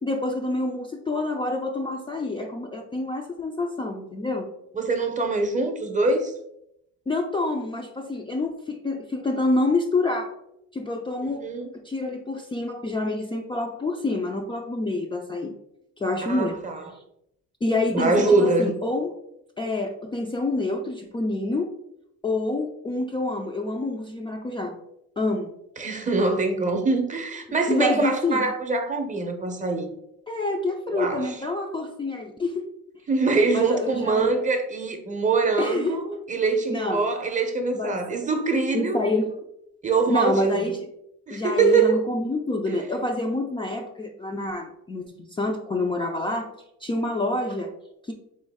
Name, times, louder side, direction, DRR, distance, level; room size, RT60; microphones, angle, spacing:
voice 1, 0.0-4.5 7.1-10.3 10.7-11.4 11.8-15.6 16.0-16.6 17.6-19.1 19.6-21.7 22.2-24.7 25.2-25.5 27.7-28.5 30.3-32.7 33.5-34.3 35.6-36.0 36.7-37.0 37.7-38.2 38.7-39.3 40.1-40.9 41.3-46.5 46.8-47.7 48.0-48.1, left 2 dB, 15° left, 0.4 m, -27 dB
voice 2, 4.7-6.3 11.3-11.7 16.2-16.8 17.9-18.7 25.8-29.9 30.9-31.4 33.1-39.0 39.8-40.7 41.3-42.0 42.7-42.8, right 3 dB, 25° right, 0.7 m, -24 dB
3.7 x 3.1 x 3.5 m
cardioid pair, 100°, 31 cm